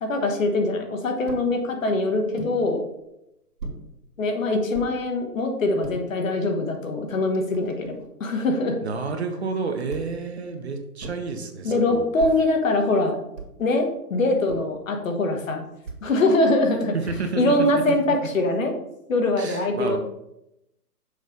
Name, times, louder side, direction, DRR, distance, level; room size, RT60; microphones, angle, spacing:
voice 1, 0.0-2.8 4.2-7.9 8.2-8.8 11.6-13.2 13.6-15.6 16.0-16.9 17.3-18.7 19.1-20.0, left 2 dB, 55° left, 4 dB, 1.3 m, -23 dB
sound 1, 1.3-1.5 2.4-2.6 3.6-3.9 4.7-4.9 5.6-6.0 6.7-6.8 7.1-8.1 9.9-10.3 11.0-11.3 12.2-12.5 13.4-13.7 14.5-14.8 15.8-16.1 17.1-17.5, right 3 dB, 90° right, 1.9 m, -38 dB
voice 2, 8.8-12.1 16.9-18.0 19.4-20.0, right 4 dB, 45° right, 5 dB, 0.8 m, -30 dB
6.4 x 3.2 x 5.2 m, 0.85 s
hypercardioid pair, 160°, 47 cm